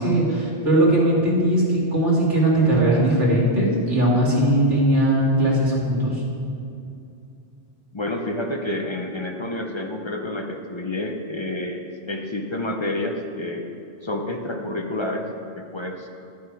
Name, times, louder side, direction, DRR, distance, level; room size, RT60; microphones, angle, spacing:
voice 1, 0.0-6.2, right 1 dB, 90° right, -5 dB, 2.5 m, -19 dB
voice 2, 7.9-13.7 14.0-15.3 15.6-16.1, left 1 dB, 35° left, 2 dB, 0.5 m, -29 dB
12.0 x 6.3 x 4.6 m, 2.5 s
omnidirectional pair, 1.2 m